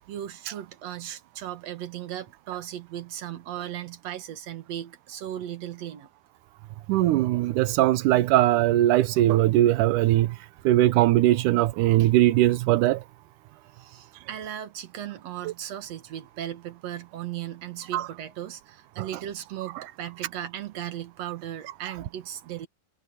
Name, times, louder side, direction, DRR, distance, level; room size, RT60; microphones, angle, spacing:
voice 1, 0.0-6.1 13.7-22.7, right 11 dB, 55° right, 2.3 m, -37 dB
voice 2, 6.9-10.4 10.6-13.0 17.9-18.1, right 14 dB, 75° right, 2.0 m, -20 dB
omnidirectional pair, 4.4 m